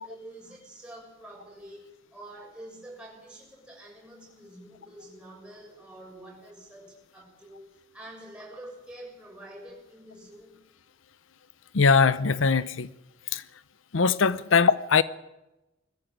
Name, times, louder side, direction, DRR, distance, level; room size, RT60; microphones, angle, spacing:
voice 1, 0.0-1.9 2.1-10.6, right 1 dB, 5° right, 6.9 m, -47 dB
voice 2, 11.7-12.9 13.3-13.4 13.9-15.0, left 5 dB, 85° left, 0.7 m, -21 dB
21.0 x 14.5 x 9.1 m
head